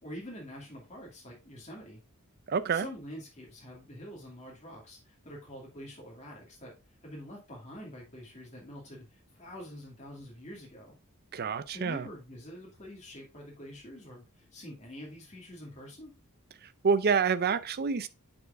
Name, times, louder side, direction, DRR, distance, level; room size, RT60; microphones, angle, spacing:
voice 1, 0.0-2.0 2.7-6.7 7.0-10.9 11.7-16.1, equal, 30° left, 2.3 m, -46 dB
voice 2, 2.5-2.9 11.3-12.0 16.8-18.1, right 5 dB, 45° right, 0.5 m, -27 dB
9.2 x 4.4 x 2.6 m
head